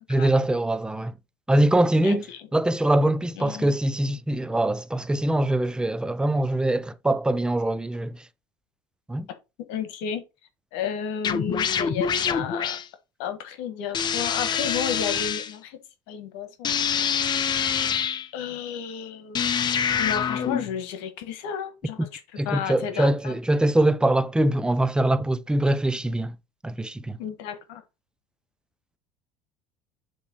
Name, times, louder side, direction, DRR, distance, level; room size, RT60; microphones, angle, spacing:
voice 1, 0.1-1.1 1.5-2.3 2.5-8.2 9.1-9.3 22.4-26.4 26.6-27.2, right 1 dB, 5° right, 0.5 m, -23 dB
voice 2, 2.0-2.4 3.4-3.7 9.7-10.2 10.7-12.8 13.2-15.8 16.1-16.7 18.3-19.4 20.0-23.4 27.2-27.8, left 8 dB, 75° left, 1.5 m, -32 dB
sound 1, 11.2-12.9 13.9-15.5 16.6-18.3 19.3-20.8, left 7 dB, 35° left, 0.9 m, -25 dB
7.0 x 3.1 x 6.0 m
supercardioid pair, 100°, 13 cm